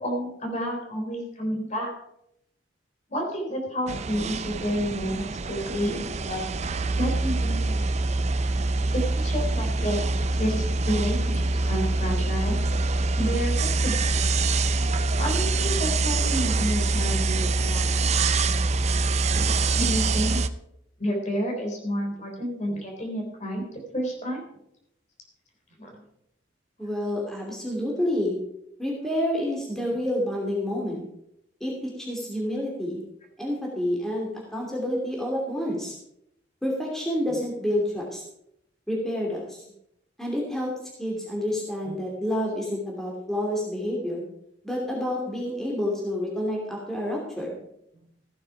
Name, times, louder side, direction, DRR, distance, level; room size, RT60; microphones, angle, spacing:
voice 1, 0.0-1.9 3.1-6.4 7.0-7.9 8.9-12.6 13.2-14.0 15.2-17.9 19.3-20.4 21.0-23.6 23.9-24.4 25.8-26.0 41.8-42.0, equal, 40° left, 1 dB, 3.8 m, -30 dB
sound 1, 3.9-20.5, right 3 dB, 35° right, 0.5 m, -25 dB
voice 2, 26.8-28.4 28.8-31.0 31.6-33.0 33.4-36.0 36.6-38.2 38.9-39.6 40.2-40.7 41.0-44.3 44.6-47.6, left 1 dB, ahead, -3 dB, 2.8 m, -28 dB
15.0 x 9.2 x 4.8 m, 0.77 s
head